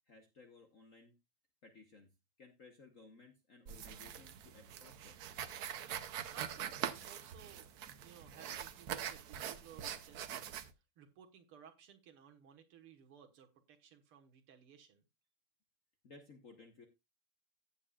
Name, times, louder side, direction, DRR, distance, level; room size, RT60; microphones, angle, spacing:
voice 1, 0.1-1.1 1.6-2.1 2.4-5.2 16.0-16.9, left 3 dB, 45° left, 5 dB, 1.2 m, -59 dB
sound 1, 3.7-10.7, right 9 dB, 60° right, 1.0 m, -44 dB
voice 2, 6.2-7.7 8.0-10.7 11.0-15.0, right 8 dB, 80° right, 5 dB, 2.3 m, -59 dB
14.5 x 8.6 x 2.4 m, 0.22 s
omnidirectional pair, 2.4 m